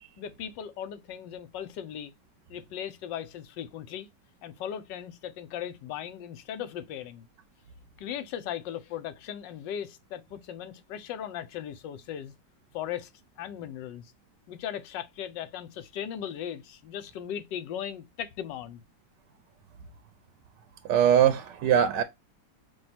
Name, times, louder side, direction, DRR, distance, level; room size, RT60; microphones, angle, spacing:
voice 1, 0.2-2.1 2.5-4.1 4.4-7.3 8.0-12.3 12.7-13.1 13.4-14.1 14.5-18.8, left 9 dB, 90° left, 1.3 m, -38 dB
voice 2, 20.8-22.0, right 9 dB, 85° right, 1.2 m, -21 dB
6.1 x 2.3 x 2.8 m
omnidirectional pair, 1.9 m